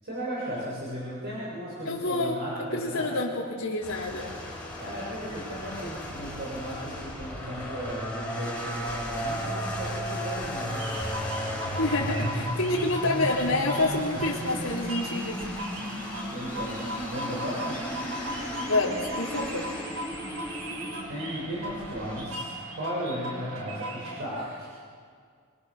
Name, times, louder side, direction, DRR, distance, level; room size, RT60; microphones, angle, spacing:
voice 1, 0.0-3.1 4.8-10.8 12.0-12.4 14.1-14.4 15.8-16.8 17.1-17.8 21.1-22.4 22.8-24.7, equal, 50° right, -7 dB, 7.6 m, -36 dB
voice 2, 1.9-2.4 2.7-4.3 11.8-15.4 18.6-19.7, left 2 dB, 75° left, -7 dB, 3.5 m, -28 dB
sound 1, 3.8-22.2, equal, 5° left, 6.1 m, -37 dB
sound 2, 10.8-24.2, equal, 75° right, 6.2 m, -38 dB
sound 3, 11.0-21.0, right 1 dB, 15° right, 3.8 m, -37 dB
29.0 x 24.5 x 6.7 m, 2.1 s
head